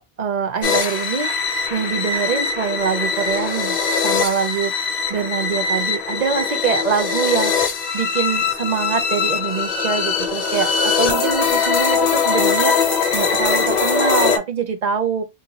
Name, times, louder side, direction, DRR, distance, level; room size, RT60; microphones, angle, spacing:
voice 1, 0.0-3.8 4.0-15.2, right 7 dB, 50° right, 0.6 m, -24 dB
sound 1, 0.6-14.4, left 5 dB, 50° left, 0.7 m, -21 dB
2.7 x 2.2 x 4.0 m
omnidirectional pair, 1.1 m